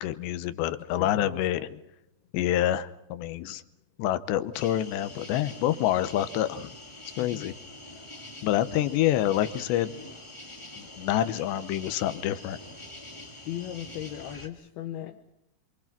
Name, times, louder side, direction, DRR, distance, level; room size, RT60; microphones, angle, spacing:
voice 1, 0.0-1.6 2.3-3.6 4.0-6.7 7.2-7.5 8.4-9.9 10.8-12.6, left 12 dB, 90° left, 3.2 m, -27 dB
voice 2, 0.9-1.8 7.2-7.5 13.4-15.3, left 12 dB, 70° left, 2.9 m, -38 dB
sound 1, 4.5-14.5, left 1 dB, 30° left, 0.5 m, -45 dB
27.0 x 25.0 x 6.0 m
omnidirectional pair, 4.9 m